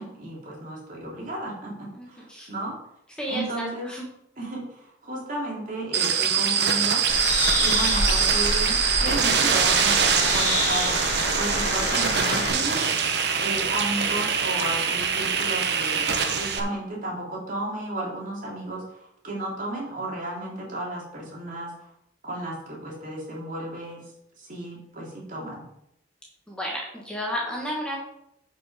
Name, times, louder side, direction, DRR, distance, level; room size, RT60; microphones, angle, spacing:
voice 1, 0.0-2.7 3.3-3.9 4.4-7.0 7.6-10.9 11.3-13.1 13.4-21.9 22.2-24.0 24.4-25.7, right 1 dB, 45° right, -3 dB, 3.1 m, -33 dB
voice 2, 2.0-2.5 3.2-4.0 26.5-28.0, equal, 5° left, -3 dB, 1.6 m, -32 dB
sound 1, 5.9-16.6, right 6 dB, 60° right, 1.0 m, -23 dB
Bird, 7.1-12.5, left 2 dB, 40° left, 2.2 m, -28 dB
10.0 x 5.4 x 5.0 m, 0.79 s
head